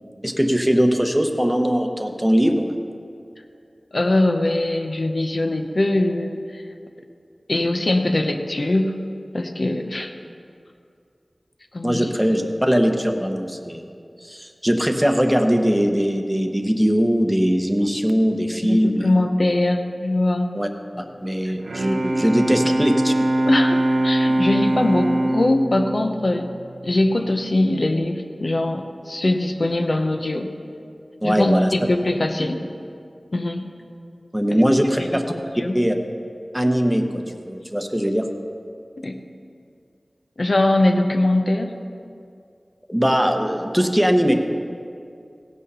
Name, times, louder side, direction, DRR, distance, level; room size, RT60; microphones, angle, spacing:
voice 1, 0.2-2.7 11.8-13.8 14.2-19.1 20.5-20.7 21.0-23.1 31.2-31.7 34.3-35.2 35.7-36.0 36.5-37.1 37.4-38.3 42.9-44.3, equal, 5° right, 4 dB, 0.9 m, -20 dB
voice 2, 3.9-6.6 7.5-9.0 9.3-10.1 11.7-12.1 18.6-20.5 23.4-26.5 26.8-30.5 31.2-32.6 33.3-33.7 34.5-34.6 35.0-35.2 35.6-35.8 39.0-39.2 40.4-41.7, left 1 dB, 60° left, 4 dB, 0.7 m, -21 dB
Bowed string instrument, 21.4-27.2, right 1 dB, 90° right, 0.6 m, -22 dB
16.5 x 6.3 x 5.5 m, 2.4 s
wide cardioid pair, 65°, 0 cm